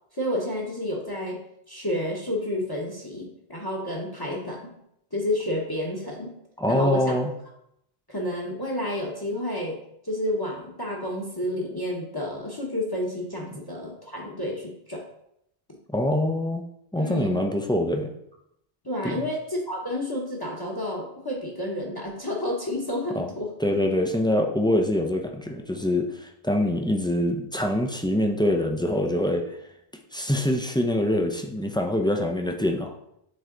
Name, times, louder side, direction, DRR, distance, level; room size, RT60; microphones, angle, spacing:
voice 1, 0.1-1.4 1.7-4.7 5.1-6.3 6.7-7.2 8.1-9.8 10.0-15.0 17.0-17.5 18.8-23.5, left 1 dB, 25° left, -1 dB, 1.0 m, -30 dB
voice 2, 6.6-7.3 15.9-16.6 16.9-18.1 19.0-19.3 23.2-23.3 23.6-29.4 30.1-32.9, left 1 dB, 5° left, 2 dB, 0.4 m, -24 dB
7.7 x 3.4 x 3.8 m, 0.77 s
omnidirectional pair, 1.0 m